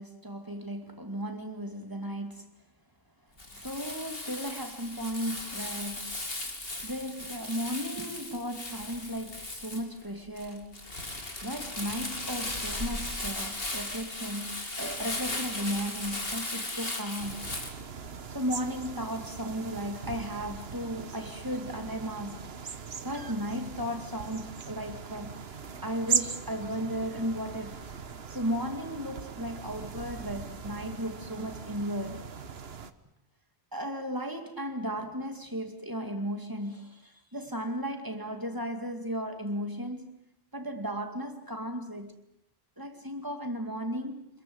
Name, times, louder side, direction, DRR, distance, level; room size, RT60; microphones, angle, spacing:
voice 1, 0.0-2.6 3.5-6.2 6.8-10.9 11.4-17.5 18.3-25.4 25.8-27.8 28.3-32.3 33.7-40.2 40.5-42.1 42.8-44.4, equal, 20° right, 2.4 m, -35 dB
Crumpling crinkling, 3.4-17.7, left 2 dB, 65° left, 3.3 m, -37 dB
sound 1, 17.2-32.9, right 6 dB, 75° right, 1.4 m, -39 dB
27.0 x 21.5 x 7.9 m
omnidirectional pair, 1.0 m